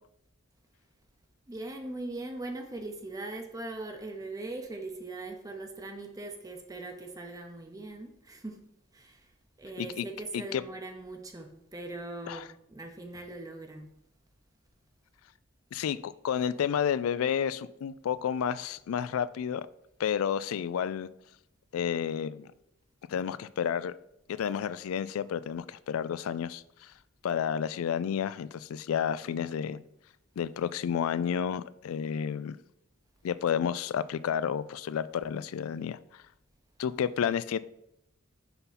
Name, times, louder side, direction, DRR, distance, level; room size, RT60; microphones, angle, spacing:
voice 1, 1.5-8.6 8.9-9.3 9.6-12.4 12.7-13.9, right 2 dB, 15° right, 0.6 m, -40 dB
voice 2, 15.7-19.7 20.0-21.1 21.7-22.5 23.1-24.0 24.3-26.9 27.2-29.8 30.4-32.6 33.2-36.2 36.8-37.6, left 8 dB, 90° left, 0.3 m, -31 dB
5.8 x 5.5 x 4.1 m
head